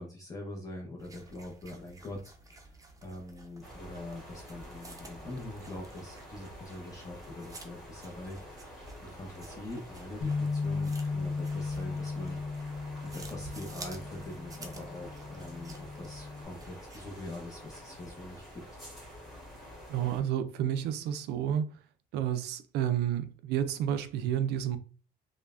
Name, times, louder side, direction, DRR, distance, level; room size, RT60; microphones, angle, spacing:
voice 1, 0.0-12.7 13.1-18.6, left 1 dB, 20° left, 0.6 m, -44 dB
sound 1, 1.0-17.2, right 2 dB, 20° right, 0.5 m, -52 dB
sound 2, 3.6-20.2, equal, ahead, 1.4 m, -48 dB
Bass guitar, 10.2-16.5, left 4 dB, 75° left, 0.8 m, -36 dB
voice 2, 19.9-21.7 22.1-24.8, right 10 dB, 80° right, 0.4 m, -30 dB
3.1 x 2.1 x 2.3 m
cardioid pair, 110°, 17 cm